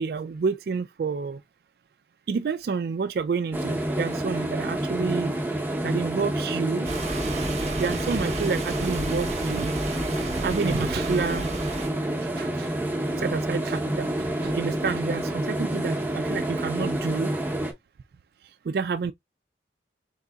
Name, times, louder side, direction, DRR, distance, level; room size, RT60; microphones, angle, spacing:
voice 1, 0.0-1.4 2.3-5.3 5.8-6.9 7.8-9.7 10.3-11.5 12.2-12.7 13.2-17.3 18.7-19.1, right 5 dB, 60° right, 0.3 m, -29 dB
sound 1, 3.5-17.7, right 1 dB, 10° right, 0.8 m, -28 dB
sound 2, 6.8-11.9, right 2 dB, 40° right, 0.9 m, -34 dB
4.5 x 3.8 x 2.3 m
head